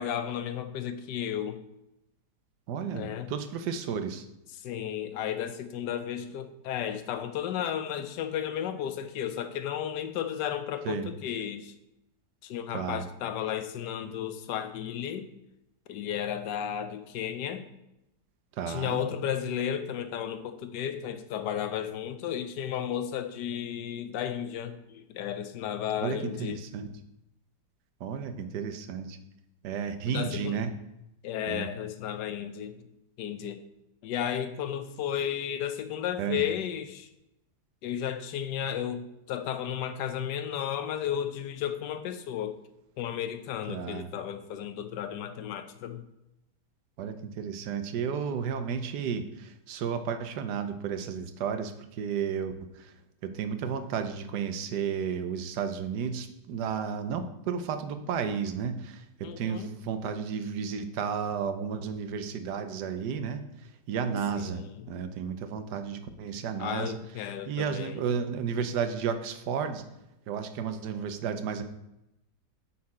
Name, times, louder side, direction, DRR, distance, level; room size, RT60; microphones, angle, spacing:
voice 1, 0.0-1.6 2.9-3.3 4.5-11.7 12.4-15.3 15.9-17.6 18.7-26.6 30.1-30.6 31.2-32.7 33.2-33.6 34.0-37.1 37.8-42.6 43.0-46.0 59.2-59.7 64.3-64.9 66.6-68.0, left 9 dB, 90° left, 10 dB, 1.3 m, -33 dB
voice 2, 2.7-4.2 10.8-11.1 12.7-13.0 18.6-19.0 26.0-26.9 28.0-29.2 29.6-30.7 31.5-31.7 36.2-36.4 43.7-44.1 47.0-52.5 52.8-52.9 53.2-63.4 63.9-67.0 67.5-69.8 70.3-71.6, right 7 dB, 80° right, 9 dB, 1.3 m, -32 dB
8.6 x 4.3 x 4.2 m, 0.88 s
omnidirectional pair, 1.8 m